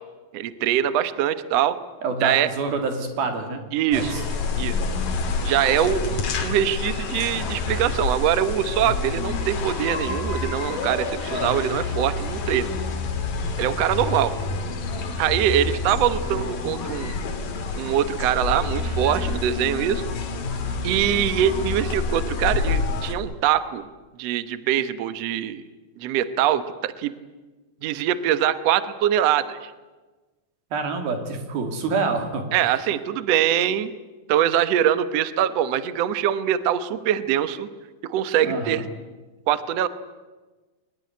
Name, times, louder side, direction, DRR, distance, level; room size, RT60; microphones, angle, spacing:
voice 1, 0.3-1.8 2.2-2.5 3.7-4.1 4.6-4.8 5.4-12.7 13.6-14.3 15.2-17.2 17.8-20.0 20.8-23.9 24.2-25.6 26.0-27.2 27.8-29.7 32.5-33.9 34.3-37.7 38.0-38.8 39.5-39.9, right 10 dB, 65° right, 12 dB, 1.7 m, -23 dB
voice 2, 2.0-3.6 3.9-4.2 30.7-32.8 38.4-38.8, right 4 dB, 80° right, 6 dB, 4.5 m, -27 dB
sound 1, 3.9-23.1, left 4 dB, 65° left, 3.8 m, -28 dB
23.0 x 20.5 x 9.6 m, 1.2 s
omnidirectional pair, 4.2 m